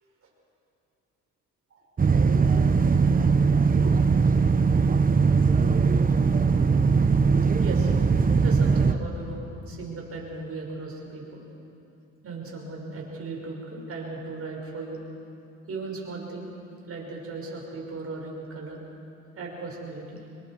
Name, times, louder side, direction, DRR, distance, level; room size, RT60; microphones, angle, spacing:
sound 1, 2.0-8.9, right 5 dB, 30° right, 0.9 m, -20 dB
voice 1, 7.6-7.9 8.4-11.4 12.2-15.0 15.7-16.5 16.9-18.8 19.3-20.2, right 3 dB, 50° right, -2 dB, 6.1 m, -37 dB
26.0 x 22.0 x 4.9 m, 2.8 s
cardioid pair, 90°, 30 cm